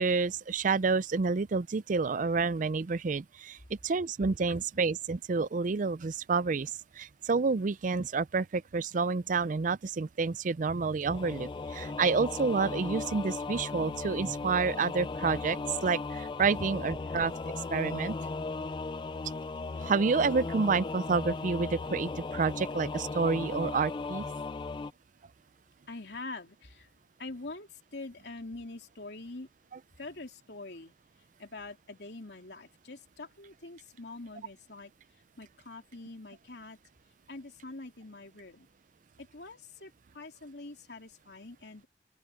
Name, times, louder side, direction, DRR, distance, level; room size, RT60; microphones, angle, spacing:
voice 1, 0.0-17.3 17.7-18.2 19.8-24.3, right 4 dB, 45° right, 0.5 m, -29 dB
Singing / Musical instrument, 11.1-24.9, left 3 dB, 25° left, 0.3 m, -37 dB
voice 2, 25.9-26.9 27.2-29.5 30.0-36.8 37.3-38.7 39.2-41.9, left 2 dB, 70° left, 3.1 m, -45 dB
open air
head